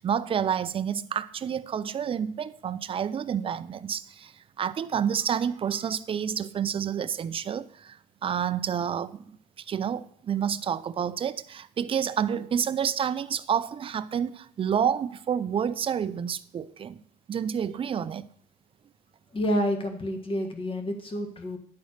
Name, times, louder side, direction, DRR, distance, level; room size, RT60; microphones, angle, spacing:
voice 1, 0.0-17.0 17.3-18.3, right 8 dB, 30° right, 0.4 m, -29 dB
voice 2, 19.3-21.6, equal, 30° left, 1.6 m, -29 dB
10.5 x 4.1 x 6.5 m
cardioid pair, 110°, 17 cm